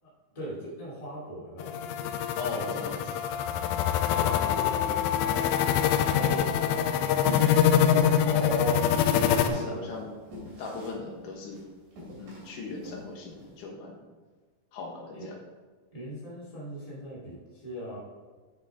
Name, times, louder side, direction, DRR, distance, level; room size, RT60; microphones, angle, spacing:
voice 1, 0.0-1.8 4.1-5.5 6.1-7.4 9.7-9.9 15.1-15.3 15.9-18.0, right 1 dB, 10° left, -6 dB, 1.9 m, -40 dB
sound 1, 1.6-9.5, left 9 dB, 80° left, 2.2 m, -25 dB
voice 2, 2.3-3.3 8.2-8.8 9.4-10.1 10.6-11.6 12.2-14.0 14.7-15.4, left 3 dB, 65° left, 0 dB, 2.5 m, -36 dB
sound 2, 6.1-13.5, left 1 dB, 60° right, 4.3 m, -42 dB
9.1 x 7.1 x 3.6 m, 1.4 s
omnidirectional pair, 4.3 m